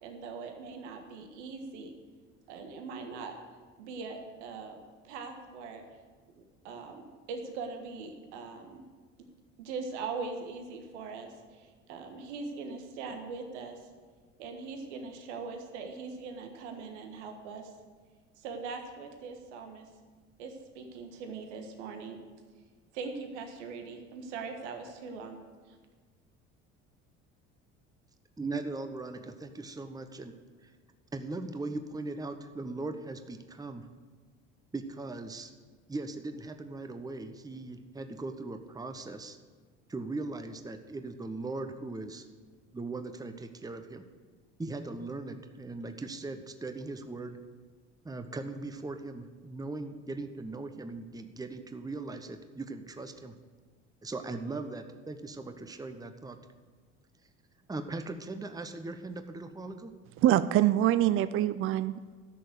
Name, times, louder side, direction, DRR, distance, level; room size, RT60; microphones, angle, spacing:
voice 1, 0.0-1.9 2.5-3.3 3.8-4.8 5.0-5.8 6.3-8.8 9.6-13.9 14.4-17.7 18.4-19.9 20.4-22.2 22.9-25.4 25.7-25.8, right 4 dB, 75° right, 4 dB, 1.5 m, -41 dB
voice 2, 28.4-30.4 30.6-30.7 31.1-33.9 34.7-35.5 35.9-39.4 39.9-42.3 42.7-44.0 44.6-47.4 48.0-53.3 54.0-56.4 57.7-59.9, right 3 dB, 10° right, 8 dB, 1.0 m, -39 dB
voice 3, 60.2-62.2, right 12 dB, 40° right, 14 dB, 0.5 m, -25 dB
12.5 x 6.6 x 7.9 m, 1.5 s
hypercardioid pair, 65°, 35 cm